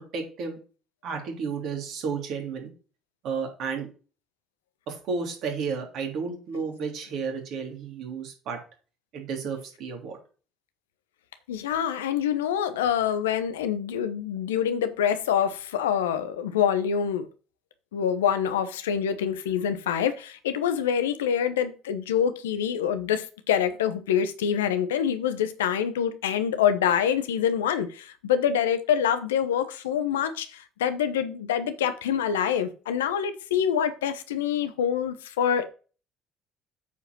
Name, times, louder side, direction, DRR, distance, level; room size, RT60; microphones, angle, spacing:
voice 1, 0.1-0.6 1.0-2.7 3.2-3.9 4.9-8.6 9.1-10.2, right 5 dB, 65° right, 3.3 m, -32 dB
voice 2, 11.5-17.3 17.9-35.6, left 8 dB, 85° left, 1.0 m, -26 dB
8.3 x 5.0 x 6.1 m
hypercardioid pair, 55°, 0 cm